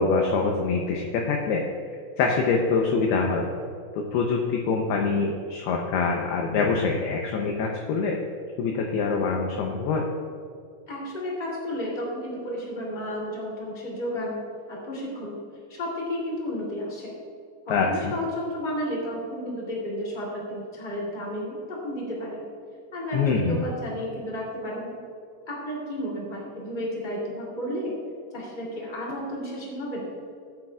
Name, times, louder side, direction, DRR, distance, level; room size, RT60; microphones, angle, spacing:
voice 1, 0.0-1.6 2.2-3.5 4.0-8.2 8.6-10.1 17.7-18.1 23.1-23.6, left 4 dB, 80° left, 1 dB, 2.4 m, -24 dB
voice 2, 10.9-14.4 14.7-15.4 15.7-17.1 17.6-22.4 22.9-24.9 25.5-27.9 28.3-30.1, equal, 15° left, -4 dB, 2.1 m, -32 dB
18.5 x 9.1 x 2.4 m, 2.3 s
omnidirectional pair, 5.4 m